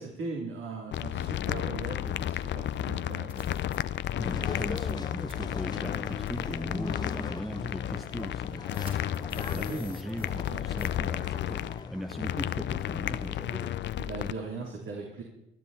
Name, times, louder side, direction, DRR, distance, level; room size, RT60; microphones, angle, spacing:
voice 1, 0.0-3.4 9.3-9.8 10.5-10.6 14.0-15.2, right 3 dB, 75° right, -1 dB, 3.5 m, -39 dB
sound 1, 0.9-14.3, left 11 dB, 65° left, 0.6 m, -33 dB
sound 2, 2.6-2.7 3.3-3.8 4.8-5.0 5.3-5.4 6.3-6.4 7.1-7.2 8.7-10.5 10.8-11.0, left 1 dB, 25° right, 3.8 m, -49 dB
sound 3, 4.2-14.3, left 3 dB, 20° left, 1.2 m, -42 dB
voice 2, 4.2-13.8, equal, ahead, 6 dB, 1.1 m, -39 dB
19.5 x 12.0 x 4.3 m, 0.87 s
cardioid pair, 90°, 20 cm